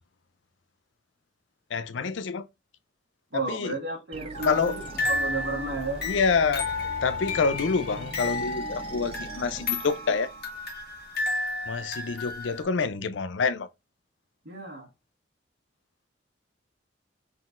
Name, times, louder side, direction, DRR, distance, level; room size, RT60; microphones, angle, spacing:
voice 1, 1.7-2.5 3.3-3.7 4.5-4.8 6.0-6.7 7.0-10.3 11.7-13.7, left 5 dB, 80° left, 0.5 m, -27 dB
voice 2, 3.3-6.0 14.4-14.9, right 3 dB, 85° right, 1.4 m, -33 dB
sound 1, 4.1-10.6, right 3 dB, 30° right, 0.4 m, -42 dB
sound 2, 4.3-12.6, left 3 dB, 60° left, 1.5 m, -32 dB
4.1 x 3.9 x 2.5 m
head